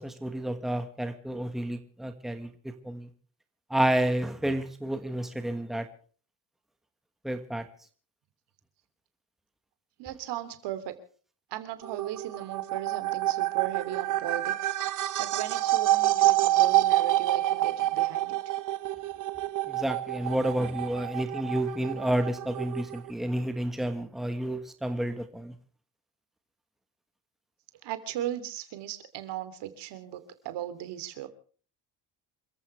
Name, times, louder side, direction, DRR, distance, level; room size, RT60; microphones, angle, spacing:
voice 1, 0.0-3.1 3.7-5.9 7.2-7.6 19.7-25.5, right 1 dB, ahead, 7 dB, 1.4 m, -30 dB
voice 2, 10.0-10.9 11.5-14.7 15.2-18.4 27.8-31.3, right 12 dB, 80° right, 11 dB, 3.1 m, -37 dB
sound 1, 11.8-23.1, right 15 dB, 45° right, 1.3 m, -27 dB
28.0 x 15.5 x 3.3 m, 0.43 s
cardioid pair, 175°, 41 cm